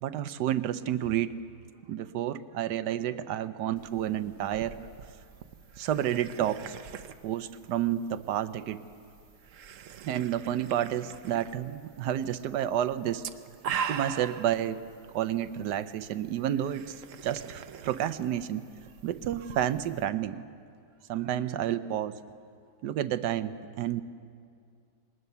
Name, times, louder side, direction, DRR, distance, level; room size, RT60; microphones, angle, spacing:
voice 1, 0.0-1.3 1.9-4.8 5.8-6.8 7.2-8.8 10.0-13.2 13.9-14.8 15.1-16.9 17.2-18.6 19.0-20.4 21.1-22.2 22.8-24.0, right 11 dB, 85° right, 13 dB, 1.3 m, -30 dB
sound 1, 3.8-20.1, right 7 dB, 60° right, 0.9 m, -43 dB
20.5 x 19.0 x 6.8 m, 2.3 s
omnidirectional pair, 1.8 m